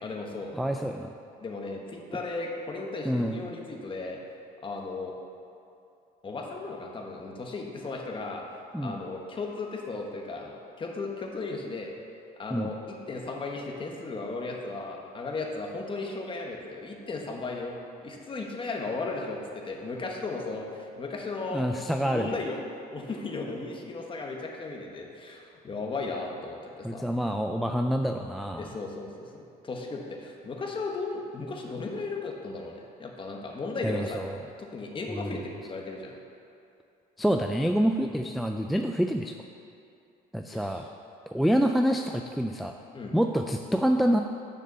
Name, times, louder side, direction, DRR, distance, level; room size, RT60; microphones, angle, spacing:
voice 1, 0.0-0.5 1.4-4.2 4.6-5.1 6.2-8.4 8.8-11.9 12.4-21.6 22.0-22.6 22.9-27.0 28.5-34.2 34.6-36.2 40.5-40.9 42.9-43.2, left 3 dB, 30° left, 0 dB, 1.4 m, -36 dB
voice 2, 0.5-1.1 3.0-3.4 8.7-9.0 12.5-12.7 21.5-22.3 26.8-28.7 33.8-34.4 35.1-35.4 37.2-39.4 40.3-40.9 41.3-42.8 43.1-44.2, equal, ahead, 4 dB, 0.3 m, -27 dB
6.8 x 6.4 x 6.7 m, 2.6 s
cardioid pair, 110°, 17 cm